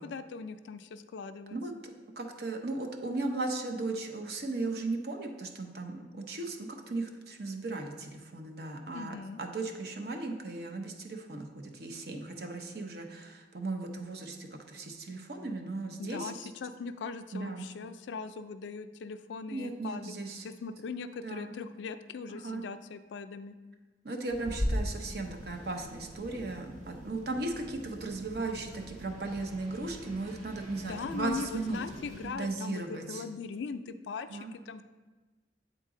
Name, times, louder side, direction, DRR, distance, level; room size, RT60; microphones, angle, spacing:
voice 1, 0.0-1.6 8.9-9.4 16.0-20.1 20.4-23.6 30.8-34.8, left 5 dB, 75° left, 11 dB, 0.3 m, -40 dB
voice 2, 2.2-16.3 17.3-17.7 19.5-20.5 21.2-21.5 22.3-22.6 24.0-31.8 32.2-33.2 34.3-34.5, right 2 dB, 60° right, 4 dB, 0.7 m, -36 dB
sound 1, 24.3-32.3, equal, 40° right, 1.1 m, -40 dB
8.1 x 3.9 x 3.7 m, 1.3 s
head